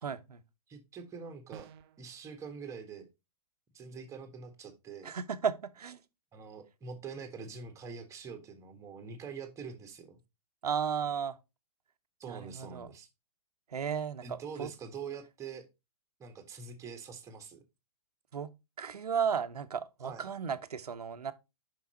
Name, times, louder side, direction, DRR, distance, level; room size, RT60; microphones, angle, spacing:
voice 1, 0.0-0.4 5.0-6.0 10.6-11.4 12.3-12.9 13.7-14.7 18.3-18.5 18.8-21.3, right 7 dB, 75° right, 0.9 m, -34 dB
voice 2, 0.7-1.7 2.0-3.1 3.7-5.1 6.3-10.2 12.2-13.1 14.2-15.7 16.2-17.6 20.0-20.3, right 5 dB, 15° right, 1.5 m, -44 dB
sound 1, 1.5-2.1, right 9 dB, 40° right, 0.5 m, -51 dB
5.8 x 5.5 x 4.2 m
figure-of-eight pair, 115°, 20 cm